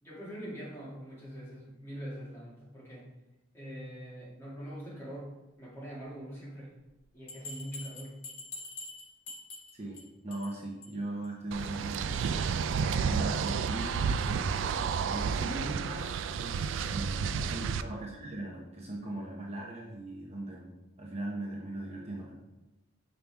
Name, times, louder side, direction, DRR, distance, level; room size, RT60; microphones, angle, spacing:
voice 1, 0.0-3.1 3.5-6.7 7.1-8.2 15.4-15.8 17.3-17.6, equal, 15° left, -7 dB, 2.0 m, -43 dB
Bell, 7.3-10.0 10.3-10.5 10.8-10.9 11.2-11.3 11.6-11.7, left 2 dB, 80° left, 2.3 m, -44 dB
voice 2, 9.7-12.2 12.7-14.5 15.1-22.3, right 2 dB, 30° right, -3 dB, 0.9 m, -39 dB
sound 1, 11.5-17.8, right 6 dB, 65° right, 0.3 m, -31 dB
5.8 x 5.3 x 3.4 m, 1.0 s
head